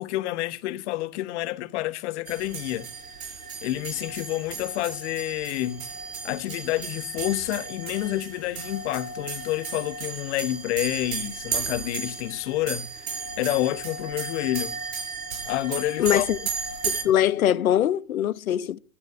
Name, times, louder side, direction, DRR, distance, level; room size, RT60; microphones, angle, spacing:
voice 1, 0.0-3.2 3.6-5.9 6.2-13.1 13.4-14.8 15.5-16.2, left 16 dB, 50° left, 1.3 m, -29 dB
sound 1, 2.3-17.0, right 5 dB, 75° right, 5.5 m, -34 dB
voice 2, 16.0-16.4 16.8-18.8, left 11 dB, 75° left, 1.0 m, -22 dB
13.0 x 8.0 x 9.4 m
hypercardioid pair, 110°, 42 cm